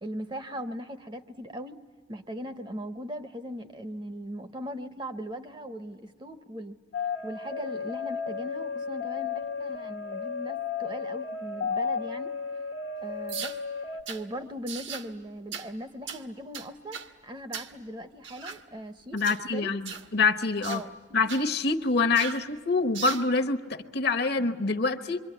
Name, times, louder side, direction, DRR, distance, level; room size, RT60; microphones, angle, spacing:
voice 1, 0.0-1.8 2.1-6.8 7.2-12.3 13.0-13.6 14.1-19.7 20.7-20.9, equal, 25° right, 9 dB, 0.7 m, -39 dB
sound 1, 6.9-14.0, left 5 dB, 85° left, 1.3 m, -33 dB
sound 2, 13.3-13.6 14.1-14.2 14.7-15.1 15.5-15.7 16.1-16.2 16.5-17.1 17.5-17.7 18.2-18.6 19.2-19.4 19.9-20.1 20.6-20.8 21.3-21.5 22.2-22.4 22.9-23.3, right 7 dB, 70° right, 1.2 m, -38 dB
voice 2, 19.1-20.8 21.1-25.2, left 3 dB, 55° left, 9 dB, 1.0 m, -26 dB
27.0 x 23.5 x 9.2 m, 1.4 s
head